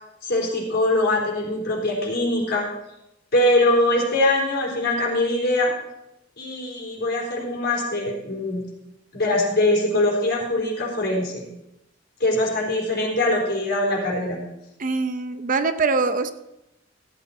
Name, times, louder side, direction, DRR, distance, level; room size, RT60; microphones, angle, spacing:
voice 1, 0.2-2.7 3.3-5.7 6.4-8.6 9.1-11.4 12.2-14.4, left 1 dB, 60° left, -2 dB, 4.0 m, -22 dB
voice 2, 14.8-16.3, right 4 dB, 45° right, 10 dB, 0.6 m, -23 dB
14.5 x 8.6 x 4.4 m, 0.88 s
head